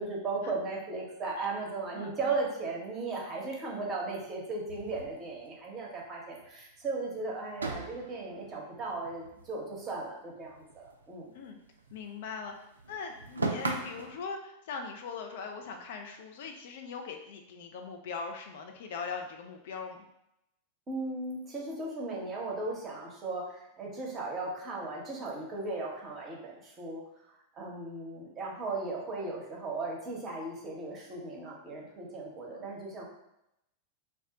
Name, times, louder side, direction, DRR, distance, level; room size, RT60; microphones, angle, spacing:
voice 1, 0.0-11.3 20.9-27.0 27.6-33.0, right 3 dB, 25° right, -2 dB, 0.7 m, -36 dB
voice 2, 1.9-2.3 11.3-11.6 11.9-12.5 12.9-20.1 32.5-32.7, left 5 dB, 55° left, 4 dB, 0.3 m, -41 dB
sound 1, 4.7-6.0 6.3-6.5 6.8-6.9 7.5-10.0 10.3-12.1 12.4-14.2, right 2 dB, 75° right, 0.3 m, -39 dB
2.3 x 2.0 x 3.7 m, 0.84 s
figure-of-eight pair, 90°, 0 cm